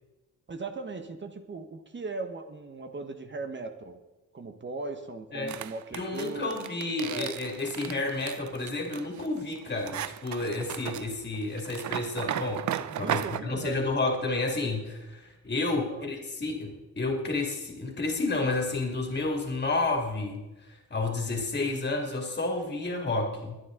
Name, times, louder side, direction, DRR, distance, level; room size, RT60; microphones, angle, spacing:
voice 1, 0.5-4.0 4.3-6.6 7.1-7.3 12.9-13.8 15.8-16.1, right 3 dB, 35° right, 6 dB, 1.5 m, -38 dB
sound 1, 5.5-13.4, right 11 dB, 65° right, 0.6 m, -35 dB
voice 2, 5.9-23.6, left 2 dB, 35° left, 1 dB, 2.6 m, -31 dB
21.5 x 9.8 x 3.9 m, 1.0 s
cardioid pair, 100°, 31 cm